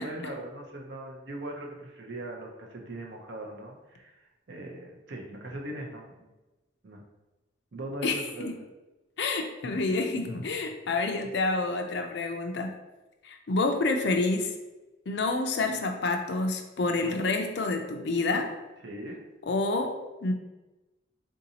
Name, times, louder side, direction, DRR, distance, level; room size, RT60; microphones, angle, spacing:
voice 1, 0.0-6.3 6.8-7.0 7.7-8.5 16.9-17.2 18.8-19.2, right 1 dB, 60° right, 1 dB, 0.6 m, -40 dB
voice 2, 8.0-8.5 9.2-12.7 13.2-14.5 15.1-18.5 19.5-20.3, left 3 dB, 60° left, 4 dB, 0.4 m, -28 dB
3.8 x 2.6 x 2.8 m, 1.1 s
head